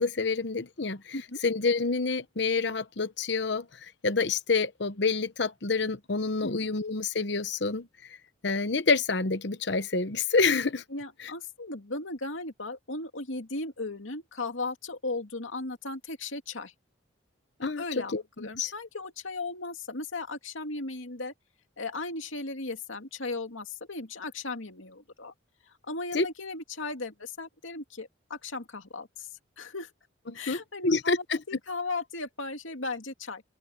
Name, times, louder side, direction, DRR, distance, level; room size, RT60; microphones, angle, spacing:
voice 1, 0.0-1.2 1.4-7.9 8.4-10.8 11.2-11.3 17.6-18.7 26.1-26.3 30.3-30.6 30.8-31.4, left 4 dB, 55° left, 1.0 m, -28 dB
voice 2, 6.4-6.7 10.9-16.7 17.8-21.3 21.8-25.3 25.9-29.3 29.6-29.9 30.3-33.4, left 3 dB, 75° left, 2.5 m, -36 dB
open air
head